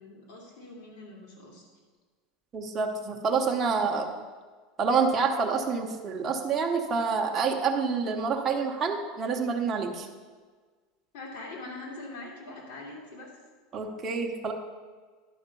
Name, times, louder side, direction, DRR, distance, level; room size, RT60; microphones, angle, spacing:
voice 1, 0.0-1.6 11.1-13.3, left 2 dB, 65° left, -2 dB, 2.7 m, -43 dB
voice 2, 2.5-4.1 4.8-10.1 13.7-14.5, right 5 dB, 20° right, 1 dB, 0.9 m, -27 dB
11.0 x 5.9 x 5.3 m, 1.4 s
supercardioid pair, 165°, 0 cm